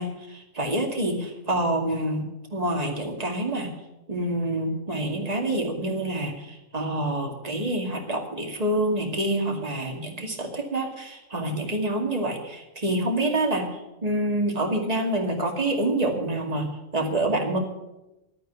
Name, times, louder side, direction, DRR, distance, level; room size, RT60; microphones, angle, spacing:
voice 1, 0.0-2.2 2.5-3.7 4.1-17.6, right 1 dB, 30° right, 2 dB, 2.4 m, -27 dB
12.5 x 9.2 x 9.4 m, 0.96 s
omnidirectional pair, 1.4 m